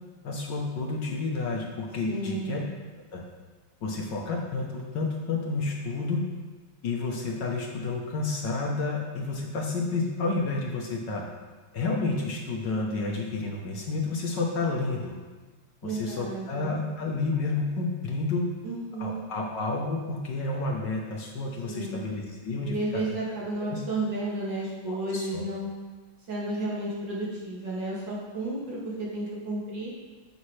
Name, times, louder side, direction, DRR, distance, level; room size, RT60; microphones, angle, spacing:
voice 1, 0.2-2.6 3.1-3.2 3.8-6.2 6.8-11.2 11.7-15.2 15.8-18.5 19.0-23.0 23.7-23.8 24.9-25.5, left 3 dB, 60° left, -1 dB, 1.5 m, -30 dB
voice 2, 2.1-2.6 15.8-16.7 18.6-19.2 21.7-22.1 22.6-25.7 26.3-29.9, right 2 dB, 55° right, -6 dB, 2.8 m, -32 dB
9.8 x 7.2 x 3.3 m, 1.3 s
omnidirectional pair, 2.3 m